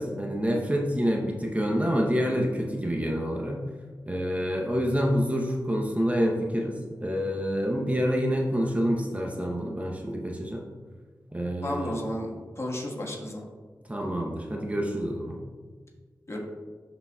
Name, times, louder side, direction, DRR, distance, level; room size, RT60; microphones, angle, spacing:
voice 1, 0.0-3.6 4.1-6.7 7.0-10.6 11.3-12.0 13.9-15.4, equal, 20° right, 0 dB, 0.9 m, -27 dB
voice 2, 11.6-13.4 16.3-16.4, left 1 dB, 40° left, -1 dB, 1.5 m, -33 dB
11.5 x 3.9 x 2.4 m, 1.5 s
cardioid pair, 40°, 7 cm